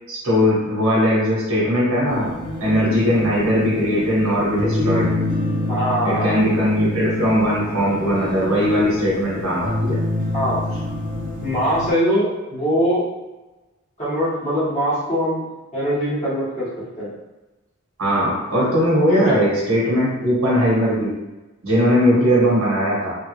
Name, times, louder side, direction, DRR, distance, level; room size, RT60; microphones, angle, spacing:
voice 1, 0.1-2.3 2.6-5.1 6.0-10.0 18.0-21.1 21.6-23.1, equal, 85° right, -6 dB, 1.4 m, -19 dB
sound 1, 2.1-11.9, left 1 dB, 40° right, 0.6 m, -27 dB
voice 2, 5.7-6.3 10.3-10.6 11.4-13.1 14.0-15.4 15.7-17.1 19.1-19.4 22.1-22.3, equal, 35° left, -11 dB, 1.5 m, -22 dB
3.4 x 2.4 x 3.1 m, 1.1 s
head